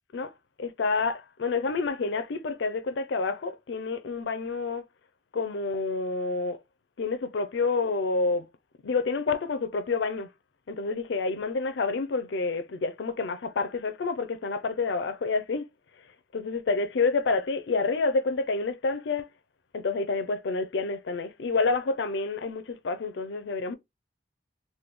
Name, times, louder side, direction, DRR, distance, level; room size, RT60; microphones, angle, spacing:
voice 1, 0.6-4.8 5.3-6.6 7.0-8.5 8.8-10.3 10.7-15.6 16.3-19.3 19.7-23.8, left 4 dB, 70° left, 0.4 m, -28 dB
3.4 x 2.2 x 3.0 m
head